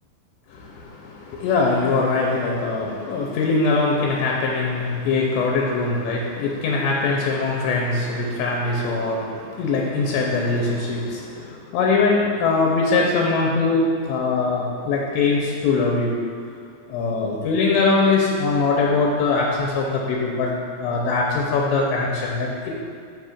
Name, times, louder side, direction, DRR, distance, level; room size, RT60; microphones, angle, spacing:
voice 1, 0.5-16.2 16.9-20.5 20.8-22.7, left 3 dB, 85° left, -3 dB, 2.8 m, -22 dB
12.0 x 4.4 x 2.4 m, 2.2 s
omnidirectional pair, 5.1 m